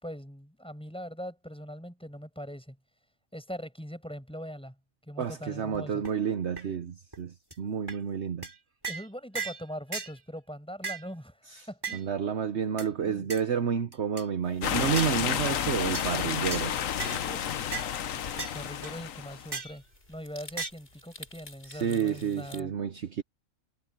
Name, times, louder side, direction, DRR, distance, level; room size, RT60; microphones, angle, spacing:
voice 1, 0.0-2.8 3.3-4.7 5.0-6.0 8.9-12.1 13.0-13.3 18.3-19.8 20.1-22.7, equal, 5° left, 6.5 m, -41 dB
voice 2, 5.2-8.5 11.5-11.7 11.9-16.7 21.7-23.2, right 7 dB, 55° right, 1.1 m, -30 dB
sound 1, 5.7-5.8 6.0-6.1 6.6-6.7 7.1-7.2 7.5-7.6 7.9-8.0 8.4-8.6 8.8-9.1 9.4-9.6 9.9-10.1 10.8-11.1 11.8-12.0 12.8-12.9 13.3-13.4 13.9-14.3 15.0-15.2 15.9-16.1 16.5-16.6 17.0-17.2 17.7-17.9 18.4-18.6 18.8-18.9 19.5-19.8 20.6-20.7, right 4 dB, 15° right, 4.2 m, -36 dB
sound 2, 14.4-22.6, left 1 dB, 40° left, 5.4 m, -50 dB
sound 3, 14.6-19.5, left 9 dB, 75° left, 1.3 m, -31 dB
omnidirectional pair, 1.4 m